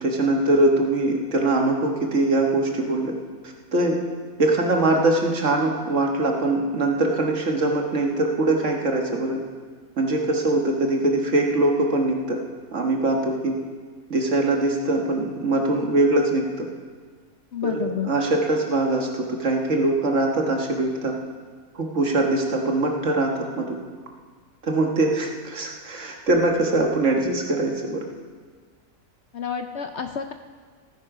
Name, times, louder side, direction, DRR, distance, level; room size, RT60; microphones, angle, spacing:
voice 1, 0.0-3.1 3.7-4.0 4.4-9.4 10.0-12.4 12.7-13.6 14.1-16.7 17.6-21.1 21.8-23.8 24.6-28.0, right 2 dB, 55° right, 1 dB, 1.7 m, -22 dB
voice 2, 17.5-18.1 29.3-30.3, left 7 dB, 60° left, 6 dB, 0.8 m, -29 dB
16.0 x 10.0 x 4.9 m, 1.5 s
omnidirectional pair, 1.6 m